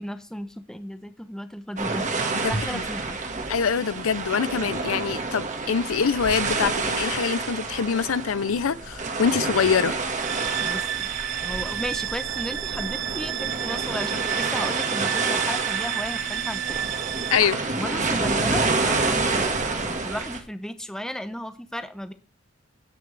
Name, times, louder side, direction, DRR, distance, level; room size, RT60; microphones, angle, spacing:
voice 1, 0.0-2.1 2.5-3.2 10.6-11.1 11.4-16.9 17.8-22.1, equal, 5° left, 0.8 m, -35 dB
sound 1, 1.8-20.4, right 3 dB, 35° right, 1.5 m, -28 dB
voice 2, 2.3-2.8 3.5-9.9 17.3-17.6, left 6 dB, 80° left, 0.5 m, -24 dB
sound 2, 10.2-17.4, right 12 dB, 60° right, 0.6 m, -31 dB
17.0 x 5.9 x 3.3 m
head